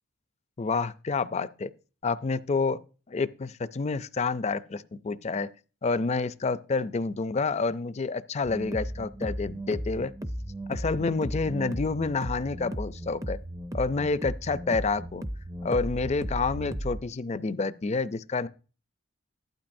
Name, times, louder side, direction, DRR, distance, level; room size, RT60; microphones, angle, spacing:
voice 1, 0.6-1.7 2.0-2.8 3.1-5.5 5.8-10.1 10.7-13.4 13.7-15.2 15.6-18.5, left 4 dB, 35° left, 0.4 m, -28 dB
sound 1, 8.4-17.0, right 1 dB, 15° right, 0.5 m, -35 dB
14.5 x 12.0 x 2.6 m
head